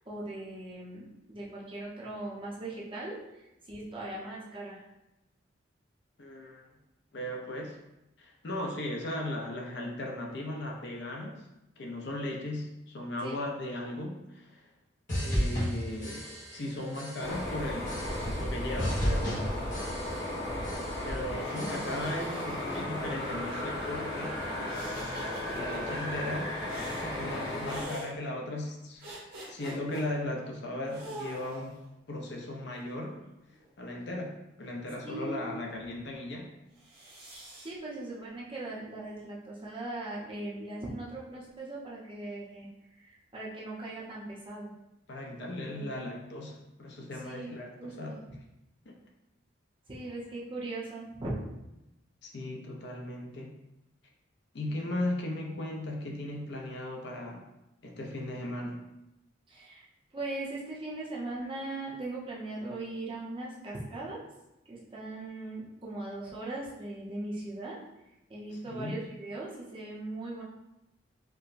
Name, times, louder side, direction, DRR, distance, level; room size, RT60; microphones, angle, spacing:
voice 1, 0.1-4.8 13.2-13.4 35.0-35.5 37.6-44.7 45.6-45.9 47.2-48.2 49.9-51.4 59.5-59.8 60.1-64.2 64.7-67.8 68.3-70.4, right 2 dB, 25° right, -5 dB, 0.7 m, -39 dB
voice 2, 6.2-6.7 7.1-7.8 8.2-11.5 11.8-14.7 15.2-19.4 21.0-24.4 25.5-26.6 26.9-29.1 29.5-31.8 32.1-33.2 33.8-36.5 45.1-48.2 48.9-49.0 52.2-53.6 54.5-57.4 57.8-58.8 68.7-69.0, left 1 dB, 60° left, 0 dB, 0.5 m, -37 dB
sound 1, 15.1-16.7 16.9-17.4 17.9-18.5 18.8-20.4 20.6-21.1 21.5-22.2, equal, 40° left, 1.1 m, -33 dB
sound 2, 17.2-27.8, left 1 dB, 85° left, 0.9 m, -35 dB
sound 3, 21.3-23.3 24.7-25.8 26.7-27.1 27.6-28.1 29.0-30.0 30.9-31.8 32.6-33.7 36.8-37.7, right 1 dB, 55° right, 1.0 m, -45 dB
4.4 x 2.1 x 2.5 m, 0.91 s
head